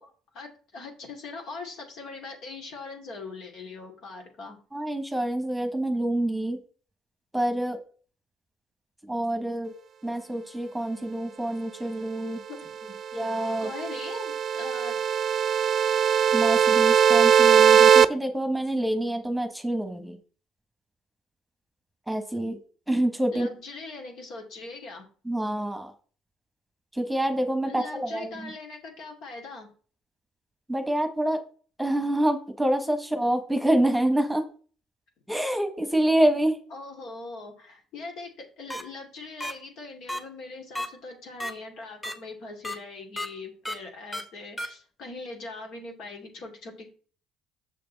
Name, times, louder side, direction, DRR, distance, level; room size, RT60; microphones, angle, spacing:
voice 1, 0.0-4.6 12.5-12.9 13.6-15.0 23.3-25.1 27.6-29.7 36.7-38.3 38.6-46.9, left 3 dB, 65° left, 2 dB, 2.6 m, -41 dB
voice 2, 4.7-6.6 7.3-7.8 9.1-9.7 10.0-12.4 13.1-13.7 16.3-20.2 22.1-22.6 22.9-23.5 25.2-25.9 26.9-28.5 30.7-31.4 31.8-34.4 35.3-36.6, right 1 dB, 5° right, 6 dB, 1.4 m, -26 dB
sound 1, 13.1-18.1, right 8 dB, 50° right, 0.4 m, -20 dB
sound 2, 38.7-38.8 39.4-39.5 40.1-40.2 40.8-40.9 41.4-41.5 42.0-42.1 42.6-42.8 43.2-43.3 43.7-43.8 44.1-44.2 44.6-44.7, left 1 dB, 15° left, 1.6 m, -31 dB
6.6 x 6.6 x 4.1 m, 0.41 s
supercardioid pair, 80°, 0 cm